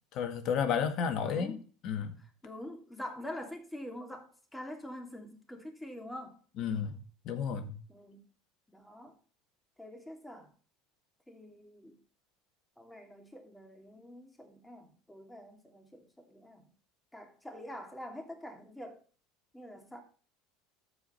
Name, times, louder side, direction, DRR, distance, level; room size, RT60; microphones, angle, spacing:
voice 1, 0.1-2.2 6.6-7.8, left 7 dB, 55° left, 1.8 m, -32 dB
voice 2, 1.2-1.6 2.4-6.4 7.9-8.2 8.7-9.2 9.8-10.5 11.3-12.0 12.8-16.7 17.1-19.0 19.5-20.0, left 1 dB, 5° left, 2.7 m, -45 dB
13.5 x 5.1 x 4.5 m
hypercardioid pair, 85°, 0 cm